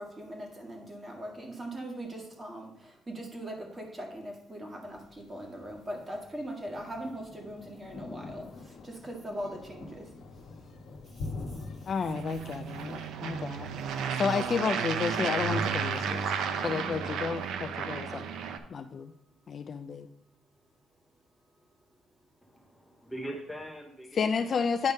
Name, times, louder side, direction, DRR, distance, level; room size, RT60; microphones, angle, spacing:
voice 1, 0.0-10.1, right 1 dB, 20° right, 1 dB, 1.7 m, -40 dB
Thunder, 4.9-16.8, left 3 dB, 60° left, 1.1 m, -46 dB
voice 2, 11.9-13.7 14.2-18.3 18.7-19.1 19.5-20.1 24.1-24.9, left 6 dB, 40° left, 9 dB, 0.4 m, -31 dB
sound 1, 12.0-18.6, right 6 dB, 75° right, 0.6 m, -33 dB
voice 3, 22.4-24.7, right 1 dB, 5° left, 0 dB, 0.8 m, -42 dB
9.3 x 3.5 x 5.3 m, 0.81 s
cardioid pair, 140°, 0 cm